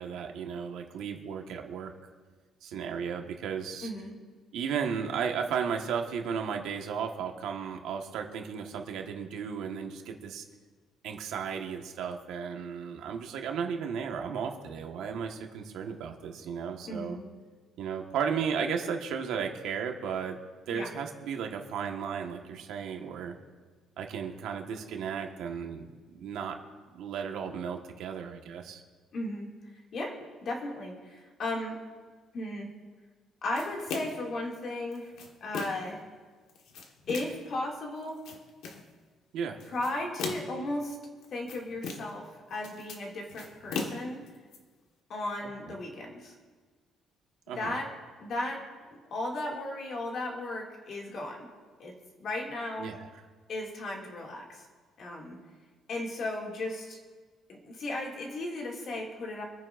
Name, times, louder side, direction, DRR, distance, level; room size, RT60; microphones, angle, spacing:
voice 1, 0.0-1.9 2.6-3.9 4.5-10.4 11.0-17.2 17.8-20.4 20.7-23.3 24.0-26.6 26.9-28.8 39.3-39.6 47.5-47.7 52.8-53.1, right 7 dB, 80° right, 3 dB, 1.4 m, -34 dB
voice 2, 3.8-4.2 16.9-17.2 20.7-20.9 29.1-29.5 29.9-31.8 32.3-32.7 33.4-35.1 35.4-36.1 37.1-38.2 39.7-41.0 41.3-44.2 45.1-46.3 47.5-47.9 48.2-48.6 49.1-51.5 51.8-52.9 53.5-54.7 55.0-55.4 55.9-57.0 57.5-59.4, left 2 dB, 45° left, -1 dB, 2.3 m, -35 dB
sound 1, 33.6-34.3 34.9-35.9 36.5-37.5 38.0-38.9 39.6-40.7 41.2-42.3 42.5-44.6, left 4 dB, 75° left, 1.5 m, -39 dB
26.5 x 9.6 x 2.6 m, 1.4 s
cardioid pair, 170°, 0 cm